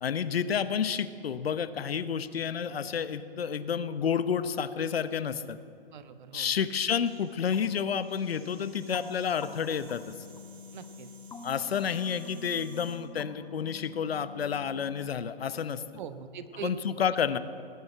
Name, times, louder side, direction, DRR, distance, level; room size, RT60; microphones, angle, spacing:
voice 1, 0.0-5.6 6.3-10.2 11.4-15.8 16.6-17.4, left 7 dB, 75° left, 14 dB, 0.9 m, -30 dB
voice 2, 5.9-6.5 10.7-11.1 16.0-16.7 17.0-17.1 17.3-17.4, right 8 dB, 50° right, 12 dB, 1.1 m, -42 dB
sound 1, 6.9-13.0, right 4 dB, 75° right, 3.0 m, -57 dB
sound 2, 7.5-15.1, left 5 dB, 10° left, 0.8 m, -48 dB
19.0 x 7.9 x 8.9 m, 2.6 s
hypercardioid pair, 135°, 31 cm